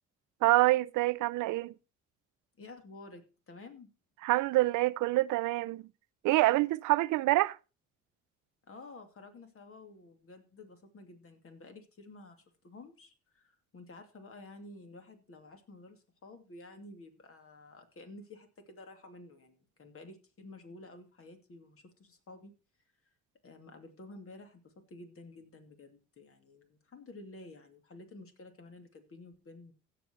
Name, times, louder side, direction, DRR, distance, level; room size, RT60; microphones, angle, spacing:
voice 1, 0.4-1.7 4.2-5.8 6.2-7.6, right 18 dB, 90° right, 0.5 m, -26 dB
voice 2, 2.6-3.9 8.7-22.6 23.4-29.7, left 2 dB, 45° left, 2.6 m, -51 dB
16.0 x 6.0 x 4.4 m
cardioid pair, 90°, 30 cm